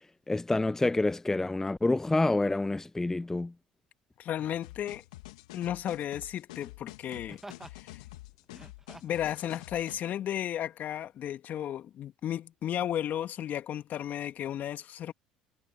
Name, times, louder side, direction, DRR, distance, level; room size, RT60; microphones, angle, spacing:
voice 1, 0.3-3.5, left 2 dB, 10° left, 0.4 m, -27 dB
Laughter, 2.8-3.0 4.3-4.7 7.0-7.8 8.4-9.3 10.0-10.1, right 1 dB, 10° right, 1.8 m, -50 dB
voice 2, 4.2-5.0 5.5-7.4 7.7-8.0 9.0-15.1, left 11 dB, 50° left, 2.0 m, -34 dB
sound 1, 4.6-10.0, left 19 dB, 80° left, 2.4 m, -48 dB
hypercardioid pair, 65°, 4 cm